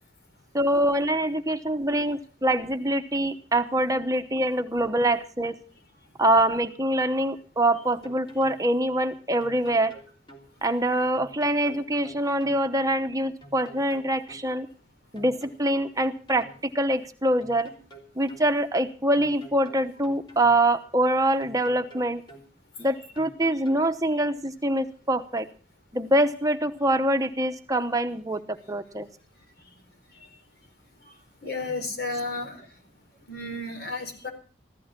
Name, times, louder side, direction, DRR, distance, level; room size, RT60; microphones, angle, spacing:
voice 1, 0.5-5.6 6.2-9.9 10.6-14.7 15.1-16.5 16.7-17.7 18.2-22.2 22.8-25.5 25.9-28.4 28.7-29.1, right 1 dB, 20° right, 7 dB, 0.9 m, -24 dB
sound 1, 7.8-8.6 9.4-10.5 11.2-12.6 13.4-14.5 15.2-16.6 17.4-18.5 19.2-20.6 21.4-22.5 23.2-23.8, right 1 dB, 25° left, 3.4 m, -48 dB
voice 2, 31.4-32.7 33.3-34.3, left 2 dB, 65° left, 4 dB, 4.5 m, -32 dB
15.5 x 13.5 x 5.9 m, 0.39 s
head